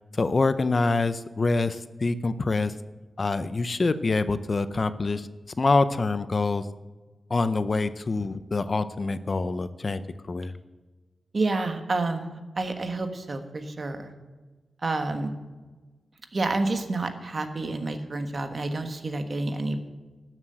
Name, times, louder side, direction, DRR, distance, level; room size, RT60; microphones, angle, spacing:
voice 1, 0.1-2.7 3.2-5.3 5.6-6.7 7.3-10.0 10.3-10.5, left 3 dB, 40° left, 13 dB, 0.5 m, -25 dB
voice 2, 11.3-14.1 14.8-15.3 16.3-19.8, right 2 dB, 40° right, 7 dB, 1.4 m, -29 dB
12.5 x 7.6 x 7.8 m, 1.3 s
wide cardioid pair, 115°, 0 cm